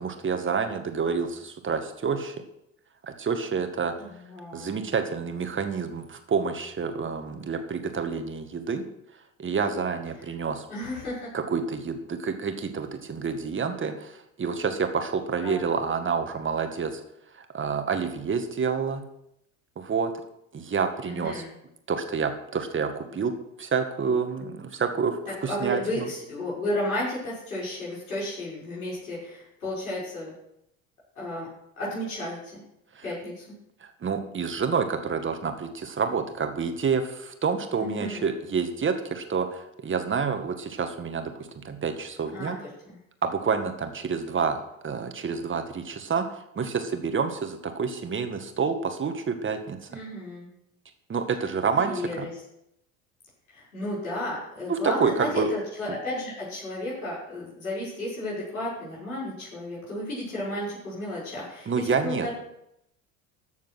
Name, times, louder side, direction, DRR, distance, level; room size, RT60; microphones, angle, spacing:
voice 1, 0.0-2.3 3.0-3.9 4.5-8.8 9.4-10.7 11.3-17.0 17.3-19.0 19.8-20.1 20.5-21.4 21.9-23.3 23.6-26.1 33.0-33.1 33.8-42.6 43.2-44.6 44.8-49.9 51.1-52.3 54.7-55.5 55.9-56.0 61.7-62.3, right 5 dB, 30° right, 6 dB, 1.9 m, -28 dB
voice 2, 4.0-4.9 10.7-11.3 15.4-15.6 21.0-21.5 25.4-30.3 31.1-31.5 31.8-32.6 33.0-33.4 37.8-38.3 42.3-42.5 42.8-43.0 49.9-50.5 51.8-52.3 53.5-62.3, left 1 dB, 85° left, -7 dB, 6.3 m, -33 dB
14.0 x 7.2 x 6.3 m, 0.80 s
figure-of-eight pair, 65°, 42 cm